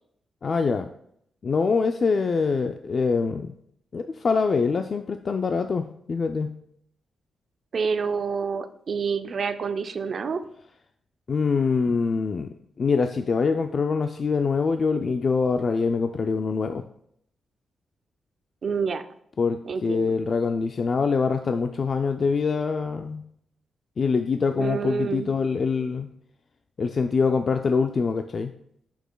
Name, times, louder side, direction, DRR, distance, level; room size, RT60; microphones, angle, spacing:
voice 1, 0.4-0.9 1.4-3.5 3.9-6.5 11.3-16.8 19.4-23.2 24.0-26.1 26.8-28.5, left 5 dB, 45° left, 6 dB, 0.3 m, -24 dB
voice 2, 7.7-10.4 18.6-19.0 19.6-20.1 24.6-25.3, right 5 dB, 45° right, 9 dB, 0.4 m, -28 dB
8.0 x 6.2 x 2.3 m, 0.70 s
wide cardioid pair, 135°, 0 cm